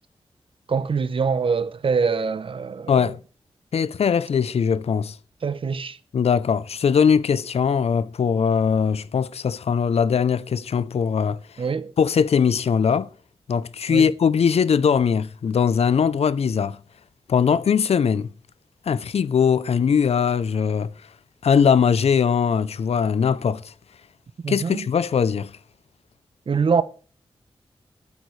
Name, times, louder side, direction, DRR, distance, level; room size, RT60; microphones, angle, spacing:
voice 1, 0.7-3.1 5.4-6.0 11.6-11.9 13.9-14.1 24.4-24.8 26.5-26.8, right 5 dB, 55° right, 0.8 m, -24 dB
voice 2, 2.9-3.2 3.7-5.2 6.1-11.4 12.0-13.1 13.5-16.8 17.3-18.3 18.9-20.9 21.4-23.7 24.5-25.5, left 6 dB, 75° left, 0.5 m, -20 dB
13.0 x 8.4 x 3.2 m
wide cardioid pair, 115°, 11 cm